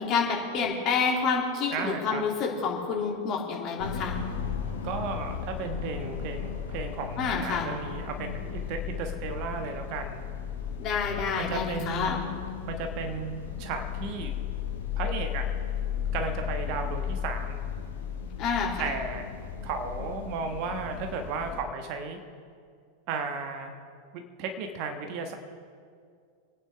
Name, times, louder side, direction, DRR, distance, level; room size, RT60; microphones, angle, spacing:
voice 1, 0.0-4.2 7.2-7.7 10.8-12.2 18.4-18.9, left 5 dB, 35° left, -1 dB, 2.6 m, -28 dB
voice 2, 1.7-2.3 4.8-10.2 11.4-12.2 12.7-14.4 14.9-15.5 16.1-17.6 18.8-19.3 19.6-22.2 23.1-23.8 24.1-25.3, right 4 dB, 45° right, 5 dB, 1.4 m, -34 dB
sound 1, 3.8-21.6, left 8 dB, 65° left, 1.5 m, -35 dB
27.5 x 9.4 x 3.4 m, 2.2 s
figure-of-eight pair, 90°, 0 cm